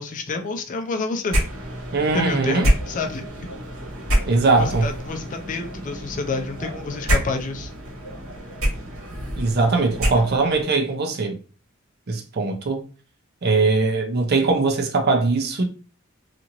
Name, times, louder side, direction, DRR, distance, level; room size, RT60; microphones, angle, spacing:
voice 1, 0.0-1.4 2.1-3.3 4.5-7.7, left 3 dB, 40° left, 0.4 m, -28 dB
sound 1, 1.3-10.6, equal, 70° right, 1.3 m, -27 dB
voice 2, 1.9-2.7 4.3-4.9 9.4-11.4 12.1-12.8 13.4-15.6, right 3 dB, 50° right, 0.6 m, -21 dB
2.8 x 2.5 x 2.8 m
head